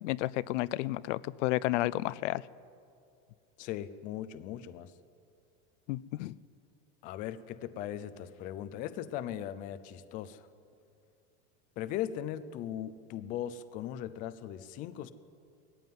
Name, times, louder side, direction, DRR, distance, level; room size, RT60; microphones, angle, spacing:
voice 1, 0.0-2.4 5.9-6.4, left 17 dB, 85° left, 18 dB, 0.6 m, -31 dB
voice 2, 3.6-4.9 7.0-10.5 11.8-15.1, left 11 dB, 25° left, 13 dB, 0.4 m, -38 dB
19.5 x 15.0 x 9.3 m, 2.4 s
supercardioid pair, 180°, 36 cm